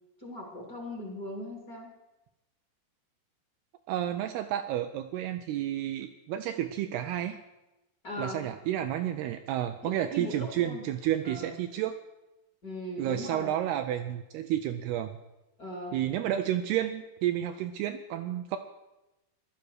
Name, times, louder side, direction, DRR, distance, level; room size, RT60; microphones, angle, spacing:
voice 1, 0.2-1.9 8.0-8.4 9.8-10.9 11.2-11.5 12.6-13.5 15.6-16.3, left 1 dB, 25° left, 0 dB, 2.8 m, -39 dB
voice 2, 3.9-7.4 8.2-12.0 13.0-15.1 15.9-18.6, right 11 dB, 80° right, 7 dB, 2.5 m, -31 dB
16.0 x 12.0 x 6.5 m, 0.99 s
omnidirectional pair, 5.0 m